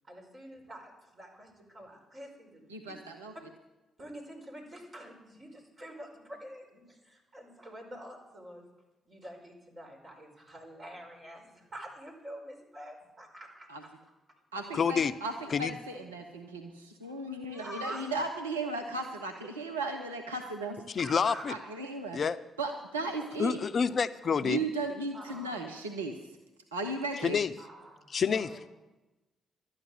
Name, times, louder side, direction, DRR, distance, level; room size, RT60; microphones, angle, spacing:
voice 1, 0.0-2.6 4.0-8.7 9.0-13.7 15.9-16.0 17.5-18.1 21.0-21.4 22.9-23.0 25.1-25.6 27.6-28.6, equal, 40° right, 0 dB, 5.0 m, -47 dB
voice 2, 2.7-3.3 13.7-13.8 14.5-20.8 21.5-22.2 22.6-23.6 24.4-26.2 26.7-27.4, right 2 dB, 90° right, 3 dB, 0.8 m, -36 dB
voice 3, 14.7-15.1 15.5-15.7 20.9-21.5 22.1-22.4 23.4-24.6 27.2-27.5 28.1-28.5, left 6 dB, 50° left, 14 dB, 0.6 m, -28 dB
12.5 x 9.7 x 7.6 m, 1.1 s
hypercardioid pair, 40°, 0 cm